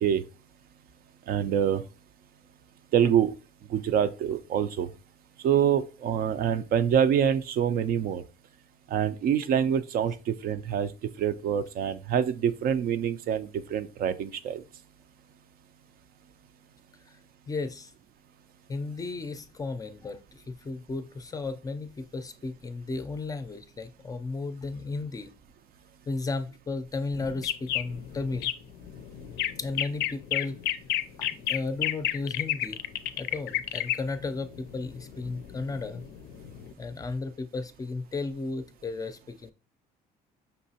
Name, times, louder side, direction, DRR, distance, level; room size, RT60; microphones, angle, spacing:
voice 1, 1.3-1.8 2.9-3.3 3.7-4.9 5.4-8.2 8.9-10.9 11.2-14.6, right 9 dB, 60° right, 0.5 m, -25 dB
voice 2, 17.5-17.9 18.7-25.3 26.1-28.5 28.9-29.0 29.6-30.6 31.2-32.8 33.2-36.0 36.8-39.5, left 3 dB, 20° left, 0.4 m, -34 dB
sound 1, 27.1-36.7, left 12 dB, 80° left, 0.4 m, -31 dB
5.4 x 2.9 x 2.8 m
cardioid pair, 110°, 17 cm